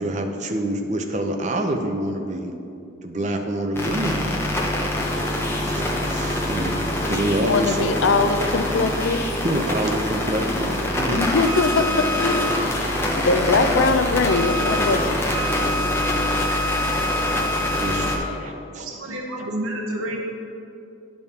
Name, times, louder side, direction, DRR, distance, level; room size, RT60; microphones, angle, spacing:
voice 1, 0.0-2.5 3.0-4.7 5.4-8.0 9.4-11.3 17.8-19.5, right 1 dB, 35° right, 4 dB, 0.6 m, -27 dB
sound 1, 3.7-18.2, left 1 dB, 10° left, 0.7 m, -24 dB
voice 2, 7.3-9.2 11.1-15.2, left 3 dB, 65° left, 8 dB, 0.5 m, -22 dB
voice 3, 18.8-20.2, right 1 dB, 85° right, 0 dB, 0.8 m, -29 dB
10.5 x 5.5 x 4.2 m, 2.8 s
head